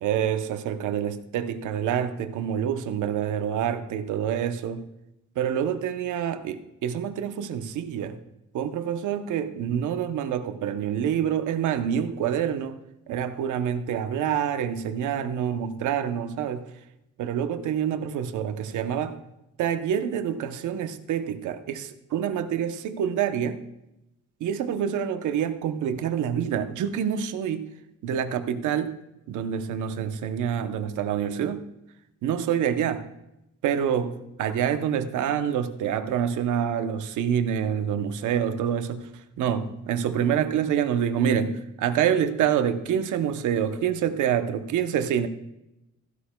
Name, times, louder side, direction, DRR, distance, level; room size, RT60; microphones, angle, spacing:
voice 1, 0.0-4.9 5.4-8.2 8.5-12.8 13.1-16.7 17.2-19.2 19.6-23.6 24.4-27.7 28.0-29.0 29.3-31.7 32.2-33.1 33.6-45.3, right 9 dB, 80° right, 0.8 m, -27 dB
15.0 x 11.5 x 2.3 m
cardioid pair, 90°, 30 cm